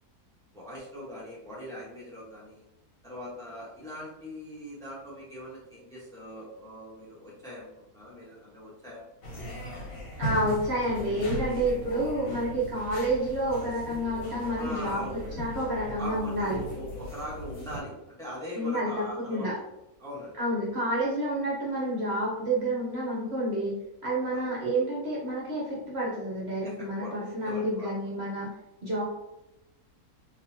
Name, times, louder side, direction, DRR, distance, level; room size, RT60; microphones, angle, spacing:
voice 1, 0.5-2.6 3.0-7.7 7.9-9.0 14.5-15.2 15.9-19.5 20.0-20.3 24.3-24.5 26.6-27.1 27.4-27.9, equal, 5° left, -7 dB, 1.0 m, -41 dB
sound 1, 9.2-17.8, right 1 dB, 65° left, 1.5 m, -38 dB
voice 2, 10.2-16.6 18.5-19.5 20.4-23.8 24.0-28.5 28.8-29.0, right 1 dB, 50° right, -6 dB, 1.0 m, -29 dB
3.9 x 2.9 x 2.7 m, 0.92 s
omnidirectional pair, 1.6 m